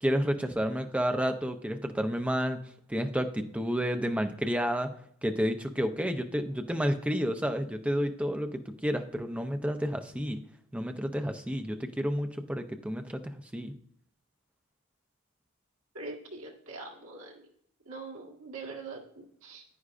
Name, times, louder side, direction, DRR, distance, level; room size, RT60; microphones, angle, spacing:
voice 1, 0.0-2.6 2.9-4.9 5.2-10.4 10.7-13.7, equal, 5° right, 6 dB, 0.5 m, -30 dB
voice 2, 15.9-17.5 17.9-19.6, right 3 dB, 75° right, 0 dB, 1.6 m, -43 dB
9.6 x 9.4 x 2.5 m, 0.65 s
head